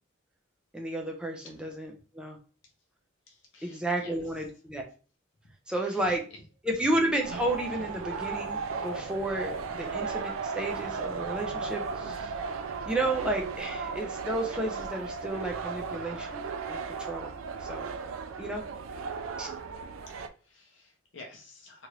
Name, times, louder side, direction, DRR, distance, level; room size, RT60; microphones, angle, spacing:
voice 1, 0.7-2.4 3.6-4.8 5.7-6.3 6.6-12.4 12.8-17.9 18.4-18.6 19.4-19.5, right 1 dB, 5° right, 0 dB, 0.5 m, -32 dB
voice 2, 3.3-4.2 5.4-5.5 5.8-6.0 6.3-6.4 20.1-21.9, left 3 dB, 70° left, 2 dB, 0.6 m, -51 dB
sound 1, 7.2-20.3, right 5 dB, 85° right, 0.3 m, -36 dB
3.0 x 2.5 x 2.9 m, 0.37 s
head